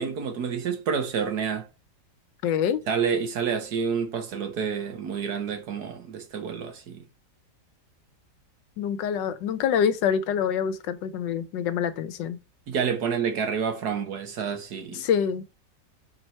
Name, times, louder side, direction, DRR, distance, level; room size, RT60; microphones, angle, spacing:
voice 1, 0.0-1.7 2.9-7.0 12.7-15.0, right 6 dB, 65° right, 1.6 m, -28 dB
voice 2, 2.4-2.8 8.8-12.4 14.9-15.4, left 8 dB, 90° left, 1.4 m, -26 dB
4.5 x 4.5 x 5.4 m
omnidirectional pair, 1.9 m